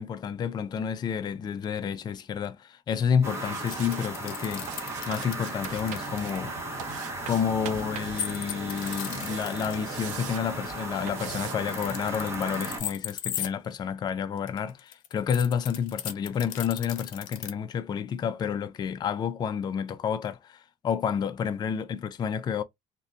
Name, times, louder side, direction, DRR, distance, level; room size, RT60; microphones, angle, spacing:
voice 1, 0.0-4.7 5.1-6.6 7.2-22.6, left 7 dB, 30° left, 0.3 m, -30 dB
sound 1, 3.2-12.8, right 2 dB, 20° right, 1.0 m, -36 dB
sound 2, 3.4-6.4 8.2-9.8 11.5-13.5 14.4-17.5, left 10 dB, 80° left, 0.6 m, -36 dB
sound 3, 3.4-4.1 4.7-6.3 6.8-8.3 8.5-10.4 11.1-11.5, right 11 dB, 65° right, 0.4 m, -42 dB
2.6 x 2.1 x 2.3 m
cardioid pair, 130°, 14 cm